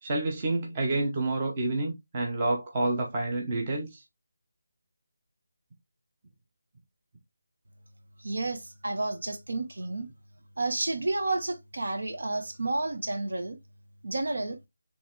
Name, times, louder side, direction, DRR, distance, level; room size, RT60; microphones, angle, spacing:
voice 1, 0.0-4.0, right 2 dB, 15° right, 0.7 m, -29 dB
voice 2, 8.2-10.1 10.6-13.6 14.0-14.6, right 2 dB, 65° right, 1.2 m, -31 dB
5.1 x 3.2 x 3.0 m
figure-of-eight pair, 180°, 0 cm